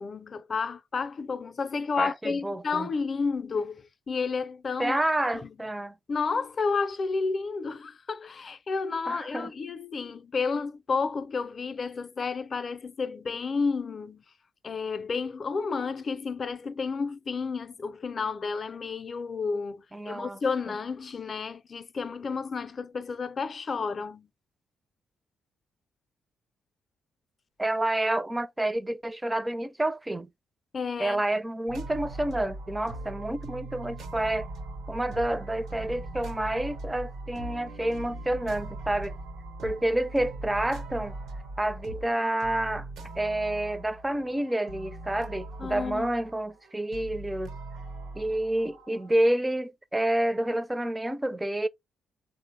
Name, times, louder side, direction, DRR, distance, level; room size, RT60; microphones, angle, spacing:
voice 1, 0.0-5.0 5.4-5.5 6.1-14.2 14.6-24.3 30.7-31.2 45.6-46.1, left 4 dB, 45° left, 0.4 m, -31 dB
voice 2, 2.0-2.9 4.8-6.0 9.1-9.5 19.9-20.4 27.6-30.3 31.0-34.5 34.9-39.2 39.6-41.1 41.6-42.9 43.2-47.6 48.1-51.7, right 1 dB, 15° right, 0.4 m, -29 dB
sound 1, 31.7-49.2, right 2 dB, 85° right, 0.9 m, -40 dB
3.5 x 2.0 x 3.2 m
supercardioid pair, 60°, 0 cm